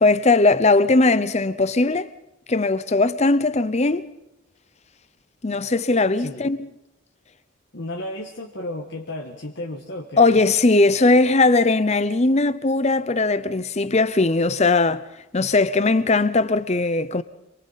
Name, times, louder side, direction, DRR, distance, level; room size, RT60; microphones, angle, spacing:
voice 1, 0.0-2.1 2.5-4.1 5.4-6.6 10.2-15.0 15.3-17.2, left 3 dB, 30° left, 0.7 m, -19 dB
voice 2, 6.2-6.5 7.7-10.4, left 1 dB, 55° left, 1.6 m, -33 dB
27.0 x 23.0 x 4.2 m
head